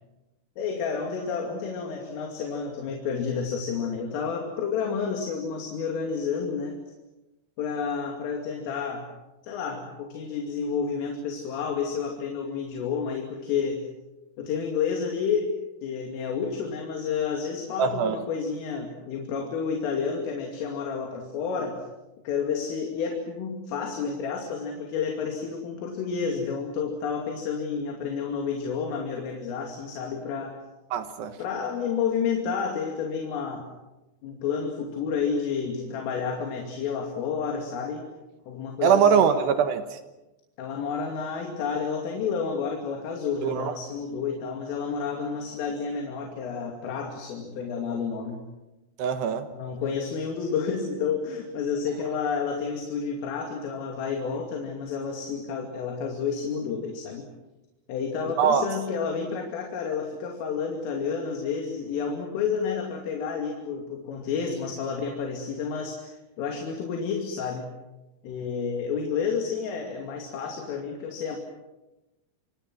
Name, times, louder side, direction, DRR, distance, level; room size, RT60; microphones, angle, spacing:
voice 1, 0.6-6.8 7.6-9.1 9.4-13.9 14.4-15.5 15.8-21.8 22.3-30.6 31.4-33.7 34.2-38.1 38.5-39.3 40.6-48.4 49.5-57.3 57.9-67.7 68.2-71.4, left 6 dB, 80° left, 2 dB, 5.2 m, -30 dB
voice 2, 17.8-18.2 30.9-31.4 38.8-40.0 43.4-43.7 49.0-49.5 58.4-58.7, right 7 dB, 70° right, 8 dB, 3.0 m, -22 dB
29.0 x 26.0 x 6.2 m, 1.0 s
omnidirectional pair, 5.8 m